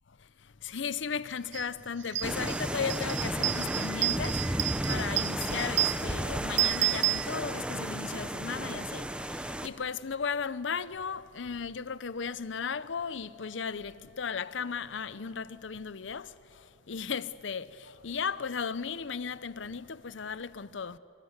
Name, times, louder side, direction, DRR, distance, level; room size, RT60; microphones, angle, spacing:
voice 1, 0.1-21.0, left 6 dB, 85° left, 0.7 m, -36 dB
sound 1, 1.5-1.7 2.0-7.9, right 12 dB, 80° right, 0.8 m, -31 dB
sound 2, 2.2-9.7, right 1 dB, 5° right, 0.8 m, -33 dB
26.5 x 25.0 x 8.1 m
head